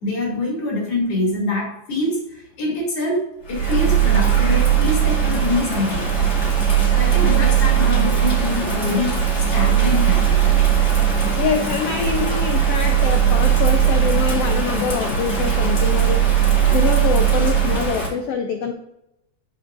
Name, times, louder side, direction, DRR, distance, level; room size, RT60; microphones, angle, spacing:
voice 1, 0.0-6.3 7.0-10.7 13.5-13.9, left 2 dB, 50° left, -2 dB, 3.3 m, -25 dB
Bird vocalization bird call bird song / Rain, 3.4-18.1, right 9 dB, 25° left, 2.5 m, -18 dB
voice 2, 6.9-7.5 11.4-18.7, left 6 dB, 90° left, 5 dB, 1.3 m, -25 dB
13.5 x 5.2 x 2.5 m, 0.82 s
omnidirectional pair, 3.6 m